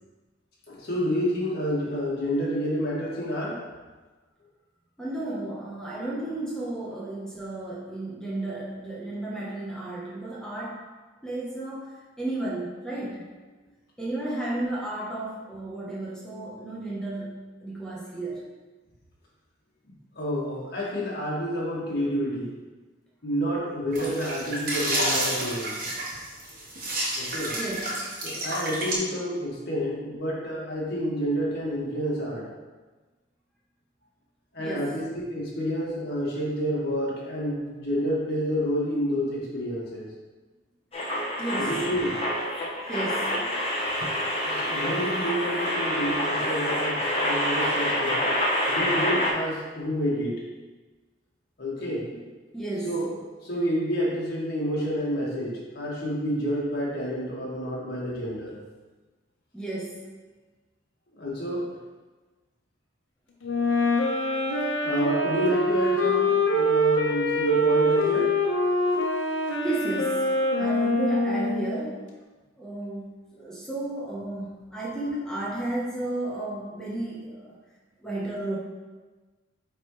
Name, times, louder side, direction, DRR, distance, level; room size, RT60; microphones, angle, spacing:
voice 1, 0.7-3.6 20.1-22.5 23.2-25.8 27.2-27.5 28.2-32.5 34.5-40.1 41.6-42.2 44.4-48.2 48.7-50.3 51.6-52.0 52.8-53.1 53.4-58.6 61.2-61.6 64.8-68.3, equal, 55° left, -6 dB, 1.8 m, -29 dB
voice 2, 5.0-10.9 11.2-13.3 14.0-18.5 27.5-28.0 34.6-35.0 41.4-41.8 42.9-43.3 52.5-53.0 59.5-60.1 69.4-72.1 72.6-77.5 78.0-78.6, right 2 dB, 5° left, -6 dB, 0.9 m, -33 dB
sound 1, 23.9-28.9, right 1 dB, 45° right, 1.4 m, -30 dB
sound 2, 40.9-49.3, left 1 dB, 30° left, 1.1 m, -27 dB
Wind instrument woodwind instrument, 63.4-71.8, left 1 dB, 75° left, 1.0 m, -24 dB
8.8 x 3.6 x 3.2 m, 1.3 s
head